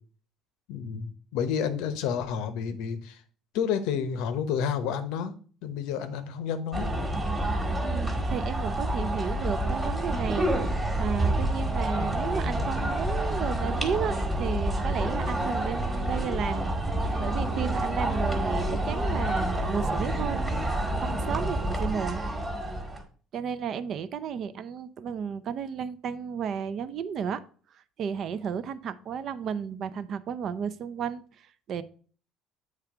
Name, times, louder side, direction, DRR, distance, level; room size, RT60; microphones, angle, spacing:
voice 1, 0.7-3.2 3.5-5.3 5.6-6.9, left 7 dB, 80° left, 0.9 m, -30 dB
sound 1, 6.7-23.0, right 1 dB, 10° right, 1.2 m, -28 dB
voice 2, 7.8-10.5 11.0-16.7 17.2-20.4 21.0-22.2 23.3-27.4 28.0-31.8, right 7 dB, 40° right, 0.4 m, -33 dB
8.5 x 3.4 x 4.8 m
cardioid pair, 165°, 0 cm